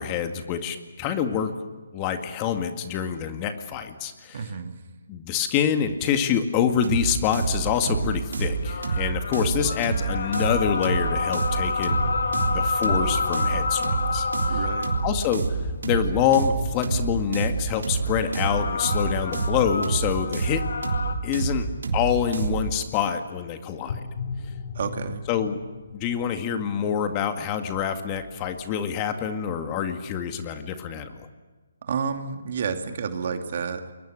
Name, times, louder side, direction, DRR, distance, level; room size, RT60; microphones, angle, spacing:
voice 1, 0.0-1.5 1.9-4.4 5.1-12.0 12.5-14.3 15.0-15.4 15.8-20.6 21.2-21.7 21.9-24.0 25.3-25.6 25.9-31.3, left 8 dB, 25° left, 7 dB, 2.0 m, -26 dB
voice 2, 4.3-4.7 14.5-14.9 24.7-25.2 31.8-33.9, right 6 dB, 55° right, 5 dB, 2.6 m, -30 dB
sound 1, 6.8-22.7, right 5 dB, 70° right, 3.5 m, -27 dB
sound 2, 8.4-15.2 18.0-21.1, left 4 dB, 70° left, 2.2 m, -29 dB
sound 3, 11.8-21.9 23.9-28.9, left 5 dB, 50° left, 3.1 m, -40 dB
29.0 x 22.5 x 6.5 m, 1.3 s
hypercardioid pair, 150°, 0 cm